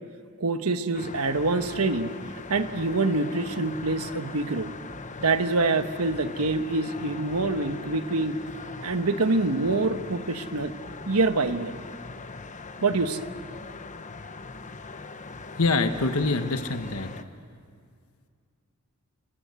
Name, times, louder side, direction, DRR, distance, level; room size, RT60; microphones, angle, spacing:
voice 1, 0.4-2.2 2.5-4.7 5.2-8.4 8.8-10.7 11.1-11.7 12.8-13.3, right 3 dB, 80° right, 9 dB, 1.3 m, -25 dB
sound 1, 0.9-17.2, left 3 dB, 35° left, 1.0 m, -41 dB
voice 2, 15.5-17.1, left 3 dB, 70° left, 8 dB, 1.3 m, -25 dB
30.0 x 22.0 x 8.3 m, 2.2 s
head